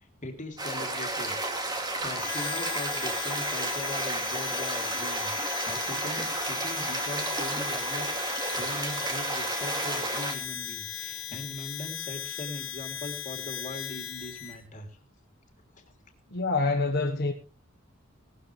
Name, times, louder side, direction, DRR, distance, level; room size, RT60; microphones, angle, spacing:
voice 1, 0.2-1.4 1.6-5.3 5.7-14.9 15.8-15.9, left 1 dB, 40° left, 3.1 m, -40 dB
sound 1, 0.6-10.4, right 2 dB, 20° right, 2.8 m, -32 dB
Harmonica, 2.1-14.6, left 9 dB, 75° left, 1.8 m, -37 dB
voice 2, 16.3-17.3, left 3 dB, 55° left, 1.4 m, -26 dB
18.5 x 13.0 x 3.3 m
head